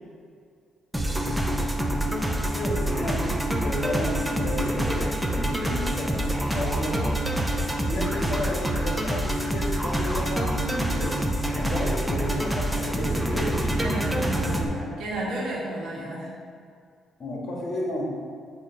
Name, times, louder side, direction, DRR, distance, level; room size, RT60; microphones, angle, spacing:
sound 1, 0.9-14.6, right 1 dB, 5° right, 0.6 m, -26 dB
voice 1, 2.5-7.2 7.8-11.2 11.6-13.9 15.9-16.0 17.2-18.1, left 1 dB, 50° left, -3 dB, 1.6 m, -32 dB
voice 2, 13.8-16.3, right 1 dB, 80° right, -5 dB, 1.6 m, -33 dB
8.1 x 3.0 x 4.6 m, 2.2 s
cardioid pair, 90°, 0 cm